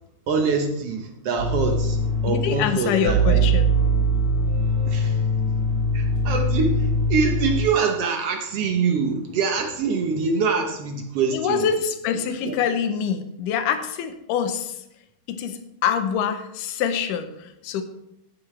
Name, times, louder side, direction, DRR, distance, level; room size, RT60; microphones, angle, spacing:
voice 1, 0.3-2.0 2.2-3.4 4.9-5.2 5.9-11.7 12.5-12.6, right 5 dB, 70° right, 4 dB, 1.4 m, -24 dB
sound 1, 1.4-7.7, right 1 dB, 30° left, 3.6 m, -22 dB
voice 2, 2.3-3.8 11.3-14.8 15.3-17.8, left 7 dB, 75° left, 9 dB, 2.3 m, -25 dB
14.5 x 8.5 x 3.2 m, 0.85 s
omnidirectional pair, 3.9 m